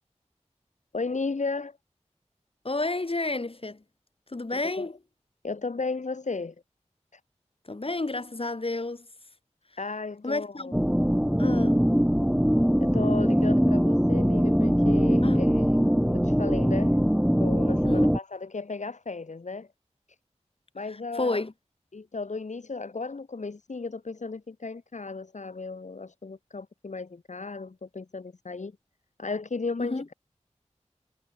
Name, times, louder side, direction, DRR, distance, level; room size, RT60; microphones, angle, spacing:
voice 1, 0.9-1.8 4.5-4.9 5.4-6.5 7.1-7.2 9.8-10.8 12.8-15.7 16.1-17.0 17.4-19.7 20.7-21.4 21.9-28.7 29.2-30.1, left 4 dB, 85° left, 3.3 m, -35 dB
voice 2, 2.6-3.8 4.3-4.9 7.7-9.1 10.2-10.7 11.4-11.9 15.2-15.4 17.8-18.1 21.1-21.5 29.8-30.1, left 2 dB, 50° left, 7.5 m, -30 dB
sound 1, 10.7-18.2, equal, 5° right, 3.3 m, -22 dB
wide cardioid pair, 65°, 12 cm